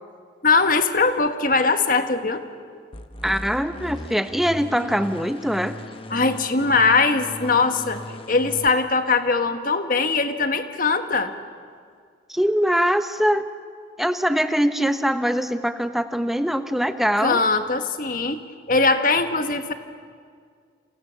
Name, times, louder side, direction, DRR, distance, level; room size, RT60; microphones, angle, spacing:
voice 1, 0.4-2.4 6.1-8.0 8.3-11.3 17.2-18.4 18.7-19.7, left 4 dB, 45° left, 8 dB, 1.5 m, -21 dB
sound 1, 2.9-8.7, left 1 dB, 30° left, 1.0 m, -38 dB
voice 2, 3.2-5.8 12.3-13.4 14.0-17.4, equal, ahead, 9 dB, 0.9 m, -22 dB
29.0 x 27.5 x 7.1 m, 2.1 s
head